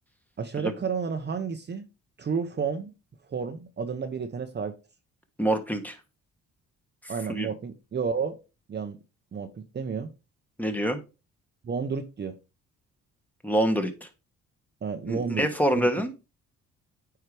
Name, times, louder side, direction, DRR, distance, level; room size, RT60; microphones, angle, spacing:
voice 1, 0.4-1.9 2.2-2.9 3.3-4.7 7.1-8.4 8.7-9.0 9.3-10.1 11.6-12.3 14.8-15.5 15.7-15.9, right 6 dB, 35° right, 0.8 m, -31 dB
voice 2, 5.4-6.0 7.3-7.5 10.6-11.0 13.4-13.9 15.1-16.1, right 1 dB, 5° left, 1.4 m, -25 dB
9.0 x 4.8 x 3.3 m
cardioid pair, 90°, 30 cm